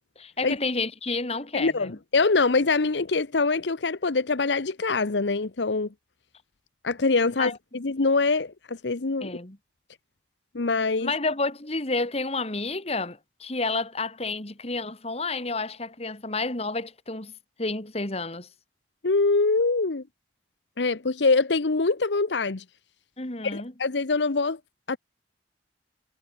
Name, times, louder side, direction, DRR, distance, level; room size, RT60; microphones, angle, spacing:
voice 1, 0.2-2.0 7.4-7.6 9.2-9.6 11.0-17.3 17.6-18.5 23.2-23.7, left 3 dB, 35° left, 2.6 m, -30 dB
voice 2, 1.5-5.9 6.8-9.3 10.5-11.1 19.0-20.0 20.8-22.6 23.5-24.6 24.9-25.0, left 3 dB, 85° left, 1.0 m, -24 dB
head